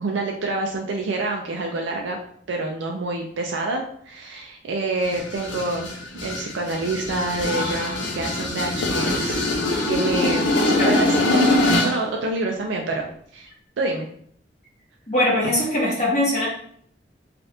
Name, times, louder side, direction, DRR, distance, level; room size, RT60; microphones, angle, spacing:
voice 1, 0.0-2.2 2.5-5.9 6.2-9.5 9.9-11.5 11.8-13.5 13.8-14.1, right 2 dB, 85° right, 1 dB, 0.4 m, -27 dB
sound 1, 5.0-12.0, left 2 dB, 80° left, 0.6 m, -23 dB
voice 2, 15.1-16.5, left 1 dB, 40° left, -6 dB, 1.3 m, -21 dB
3.2 x 2.5 x 2.7 m, 0.62 s
head